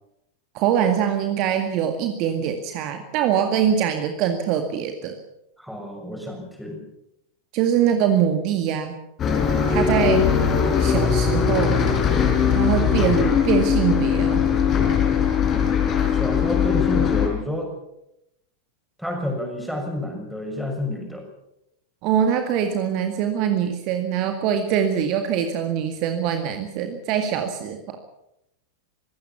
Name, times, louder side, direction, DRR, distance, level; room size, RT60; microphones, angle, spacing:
voice 1, 0.5-5.2 7.5-9.0 9.7-10.3 10.8-11.8 12.5-14.4 22.0-28.0, right 8 dB, 40° right, 6 dB, 2.0 m, -23 dB
voice 2, 5.6-6.8 16.1-17.7 19.0-21.2, left 1 dB, ahead, 2 dB, 6.5 m, -29 dB
Bus, 9.2-17.3, left 7 dB, 25° left, 4.3 m, -20 dB
24.5 x 16.5 x 7.1 m, 0.83 s
figure-of-eight pair, 90°, 0 cm